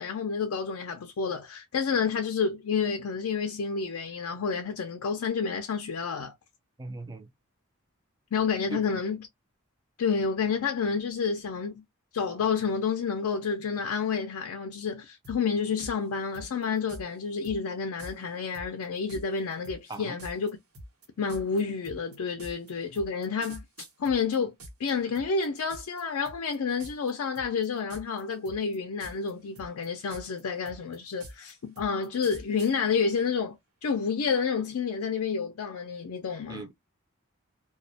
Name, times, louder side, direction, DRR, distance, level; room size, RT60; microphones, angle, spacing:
voice 1, 0.0-6.3 8.3-9.2 10.0-11.8 12.1-20.6 21.2-23.6 24.0-24.5 24.8-36.7, left 5 dB, 80° left, 0.4 m, -29 dB
voice 2, 6.8-7.3 8.7-8.8 19.9-20.2 36.5-36.7, right 2 dB, 20° right, 0.3 m, -38 dB
sound 1, 15.2-15.4 15.8-15.9 16.3-17.0 17.4-17.6 18.0-18.1 18.5-24.9 25.2-26.0 26.3-26.6 26.8-27.1 27.4-28.2 28.5-29.3 29.6-32.7, right 1 dB, 85° right, 0.9 m, -44 dB
2.3 x 2.0 x 2.6 m
head